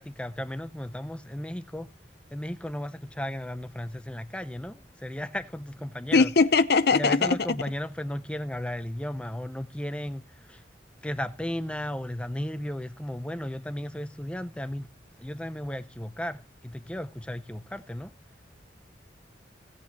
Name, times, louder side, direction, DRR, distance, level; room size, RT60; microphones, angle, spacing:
voice 1, 0.0-1.9 2.3-6.3 6.9-10.6 11.0-14.9 15.2-18.1, left 1 dB, 5° left, 0.6 m, -35 dB
voice 2, 6.1-7.4, left 4 dB, 60° left, 0.7 m, -20 dB
17.0 x 8.2 x 2.9 m
head